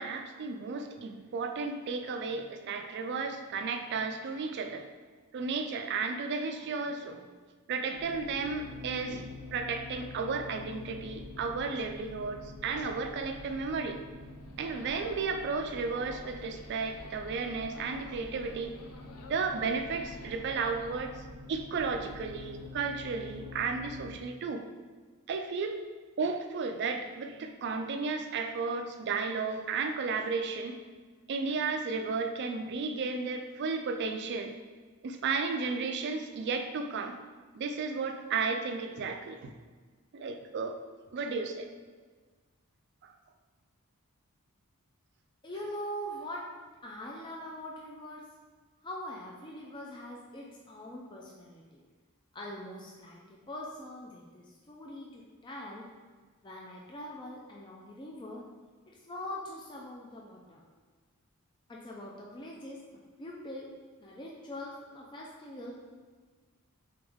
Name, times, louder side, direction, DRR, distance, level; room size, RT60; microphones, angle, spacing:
voice 1, 0.0-4.9 5.3-7.2 7.7-14.0 14.6-18.7 19.3-21.1 21.5-24.6 25.3-25.8 26.2-30.8 31.3-34.5 35.0-37.2 37.5-39.5 40.1-40.8 41.1-41.7 43.0-43.1, right 4 dB, 50° right, 6 dB, 0.3 m, -33 dB
sound 1, 8.0-24.1, left 2 dB, 5° left, 1.2 m, -47 dB
sound 2, 14.2-21.0, left 3 dB, 85° left, 0.5 m, -53 dB
voice 2, 45.4-46.4 46.8-48.2 48.8-51.8 52.3-55.9 56.4-58.4 58.9-60.6 61.7-62.8 63.2-63.7 64.0-65.7, left 1 dB, 20° left, -3 dB, 0.4 m, -43 dB
3.9 x 3.5 x 3.4 m, 1.4 s
head